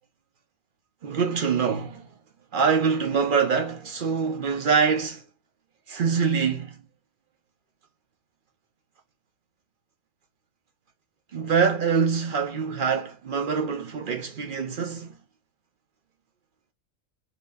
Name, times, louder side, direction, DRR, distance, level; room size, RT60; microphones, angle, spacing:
voice 1, 1.0-2.1 2.5-5.2 5.9-6.8 11.3-15.2, right 6 dB, 55° right, 0.6 m, -24 dB
2.8 x 2.6 x 3.3 m
omnidirectional pair, 1.4 m